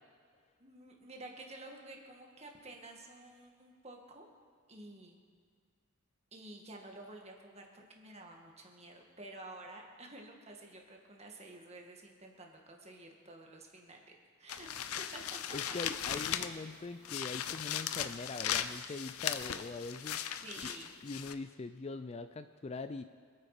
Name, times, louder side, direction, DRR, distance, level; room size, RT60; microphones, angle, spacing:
voice 1, 0.6-4.3 4.7-5.2 6.3-15.4 15.7-15.8 20.4-20.9, right 2 dB, 30° right, 1 dB, 1.9 m, -51 dB
sound 1, 14.5-16.7 17.0-21.3, left 9 dB, 80° left, 0.7 m, -38 dB
voice 2, 15.5-20.2 20.6-20.7 21.0-23.0, left 3 dB, 30° left, 10 dB, 0.4 m, -42 dB
26.5 x 8.9 x 5.0 m, 2.1 s
head